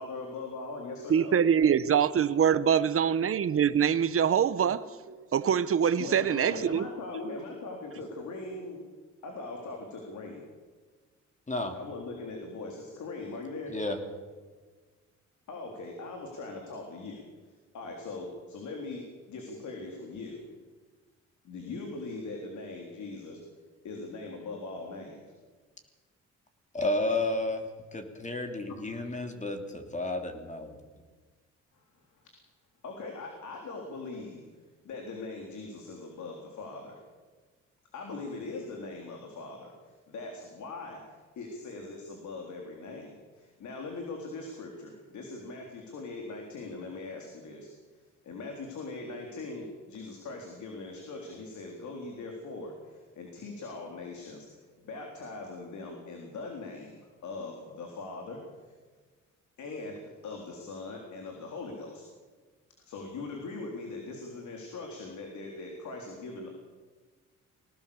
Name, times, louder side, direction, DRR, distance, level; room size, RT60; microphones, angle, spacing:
voice 1, 0.0-1.4 6.0-8.8 9.2-10.4 11.7-13.7 15.5-17.2 17.7-19.0 19.3-20.4 21.4-23.4 23.8-25.2 28.7-28.8 31.7-31.8 32.8-34.4 34.8-37.0 37.9-39.7 40.1-47.7 48.2-58.7 59.6-62.0 62.9-66.5, left 3 dB, 70° left, 3.9 m, -41 dB
voice 2, 1.1-6.9, right 8 dB, 50° right, 1.1 m, -24 dB
voice 3, 26.7-30.8, left 2 dB, 25° left, 3.0 m, -32 dB
22.0 x 18.0 x 7.1 m
cardioid pair, 90°, 30 cm